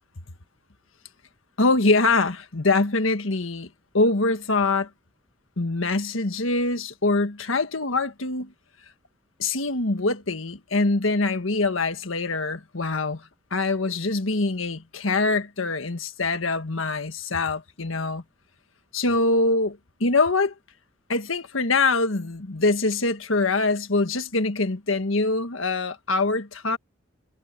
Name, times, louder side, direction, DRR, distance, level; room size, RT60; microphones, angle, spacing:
voice 1, 1.6-3.7 3.9-4.9 5.6-8.5 9.4-18.2 18.9-20.5 21.1-26.8, left 3 dB, 90° left, 1.6 m, -24 dB
head